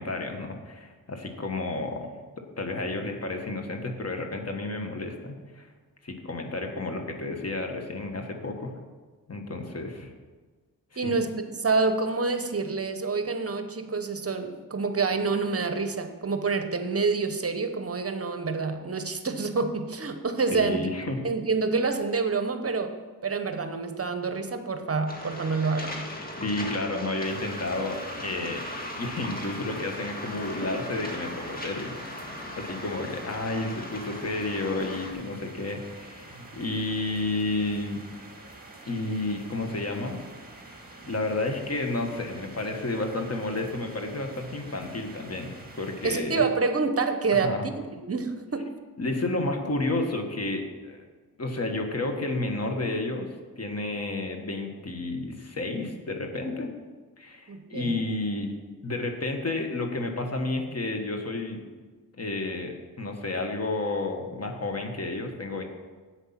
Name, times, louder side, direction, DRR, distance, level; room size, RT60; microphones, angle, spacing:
voice 1, 0.0-5.7 6.0-8.7 9.3-10.1 10.9-11.2 20.5-21.2 26.4-28.6 29.0-31.9 32.6-38.0 38.9-40.2 41.1-46.4 47.3-47.7 49.0-51.0 51.4-53.3 53.6-56.7 57.2-58.5 58.8-61.6 62.2-65.6, left 2 dB, 45° left, 4 dB, 1.6 m, -31 dB
voice 2, 11.0-20.9 21.2-26.1 46.0-47.7 48.0-48.7 57.5-58.1, right 4 dB, 40° right, 8 dB, 0.9 m, -27 dB
Waves surf, 25.1-35.1, left 1 dB, 25° left, 1.8 m, -38 dB
sound 1, 27.2-46.2, right 2 dB, 25° right, 2.1 m, -47 dB
9.9 x 8.2 x 5.8 m, 1.4 s
wide cardioid pair, 85°, 35 cm